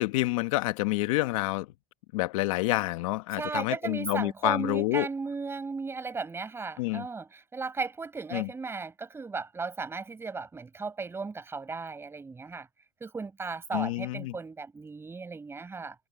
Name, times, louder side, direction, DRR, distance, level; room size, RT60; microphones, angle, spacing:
voice 1, 0.0-1.7 2.1-5.1 6.8-7.1 8.3-8.5 13.7-14.3, left 19 dB, 70° left, 1.4 m, -28 dB
voice 2, 3.4-12.7 13.0-16.0, right 4 dB, 15° right, 7.6 m, -36 dB
supercardioid pair, 135°, 18 cm